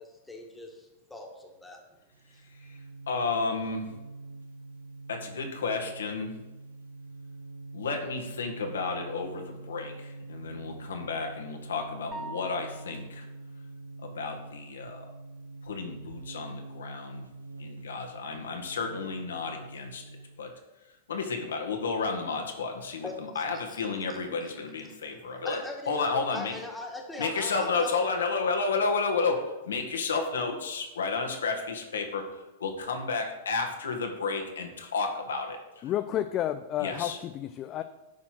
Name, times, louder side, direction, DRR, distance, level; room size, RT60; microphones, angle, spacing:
voice 1, 0.0-1.8 2.3-2.8 23.0-24.2 25.1-28.0, left 2 dB, 5° left, 0 dB, 1.9 m, -42 dB
sound 1, 2.1-20.4, right 2 dB, 90° right, 0.5 m, -45 dB
voice 2, 3.1-3.9 5.1-6.4 7.7-13.2 14.0-15.0 15.6-17.3 17.6-20.5 21.1-25.6 25.9-26.5 27.2-35.9 36.8-37.2, left 4 dB, 75° left, 3 dB, 1.6 m, -32 dB
sound 2, 12.1-13.2, right 1 dB, 15° right, 1.7 m, -42 dB
voice 3, 35.8-37.8, left 11 dB, 35° left, 9 dB, 0.4 m, -31 dB
10.5 x 4.4 x 6.0 m, 1.0 s
hypercardioid pair, 100°, 0 cm